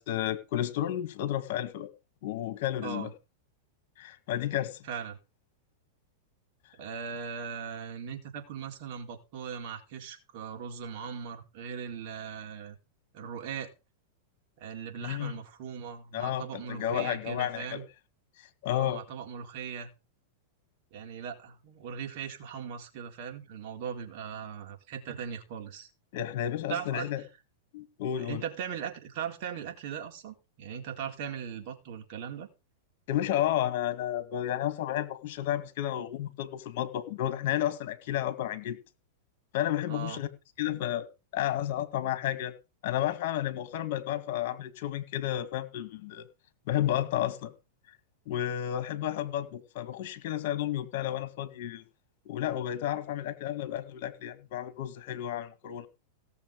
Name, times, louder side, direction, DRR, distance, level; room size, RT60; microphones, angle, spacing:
voice 1, 0.0-1.9 2.2-3.1 4.0-4.8 15.0-15.4 16.1-17.8 18.4-19.0 26.1-27.2 27.7-28.4 33.1-38.8 39.5-40.3 40.6-41.1 41.3-42.5 42.8-46.2 46.7-47.5 48.3-51.8 52.3-55.9, left 12 dB, 55° left, 12 dB, 2.0 m, -32 dB
voice 2, 4.9-5.2 6.8-12.8 13.1-13.7 14.6-17.8 18.7-19.9 20.9-25.9 26.7-27.1 28.2-32.5 39.9-40.2, right 7 dB, 55° right, 3 dB, 4.1 m, -39 dB
17.5 x 6.9 x 5.2 m, 0.29 s
hypercardioid pair, 130°, 0 cm